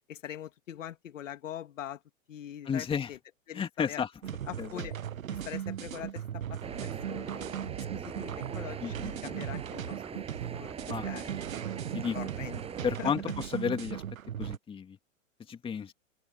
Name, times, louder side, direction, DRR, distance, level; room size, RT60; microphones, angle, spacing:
voice 1, 0.1-2.0 2.3-3.2 3.5-4.0 4.5-5.0 5.3-10.0 10.3-11.3 12.1-12.6 13.0-13.1, left 11 dB, 70° left, 2.5 m, -43 dB
voice 2, 2.7-3.1 3.5-4.1 4.6-4.9 8.8-9.1 10.9-11.1 11.9-12.2 12.8-14.0 14.4-15.0 15.5-15.9, left 7 dB, 15° left, 2.4 m, -32 dB
sound 1, 4.2-14.6, right 10 dB, 80° right, 1.2 m, -38 dB
sound 2, 6.6-13.0, right 7 dB, 15° right, 7.8 m, -42 dB
open air
hypercardioid pair, 135°, 40 cm